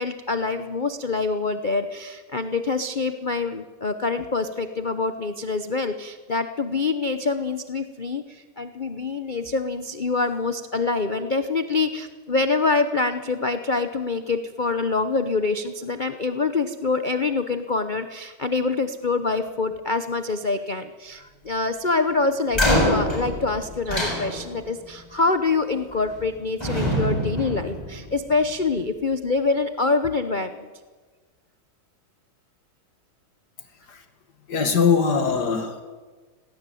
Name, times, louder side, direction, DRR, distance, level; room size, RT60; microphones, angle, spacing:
voice 1, 0.0-30.7, left 3 dB, 90° left, 9 dB, 0.4 m, -25 dB
sound 1, 22.5-24.8 25.9-26.3 26.6-28.4, equal, 10° left, 7.1 m, -25 dB
voice 2, 34.5-35.8, left 6 dB, 50° left, 7 dB, 2.4 m, -21 dB
18.5 x 17.0 x 9.2 m, 1.4 s
omnidirectional pair, 2.3 m